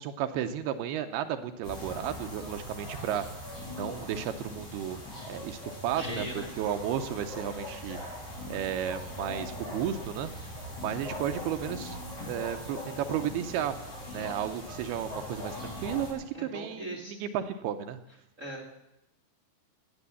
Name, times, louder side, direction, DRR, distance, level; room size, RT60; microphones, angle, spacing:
voice 1, 0.0-3.2 3.8-5.0 5.3-8.0 8.5-10.3 10.8-12.0 12.3-13.8 14.1-18.0, right 9 dB, 75° right, 8 dB, 2.7 m, -33 dB
sound 1, 1.6-16.1, left 1 dB, 35° left, 7.2 m, -40 dB
voice 2, 6.0-6.5 16.3-17.2 18.4-18.7, right 1 dB, 30° right, 0 dB, 1.5 m, -39 dB
17.0 x 8.3 x 8.3 m, 0.86 s
omnidirectional pair, 4.8 m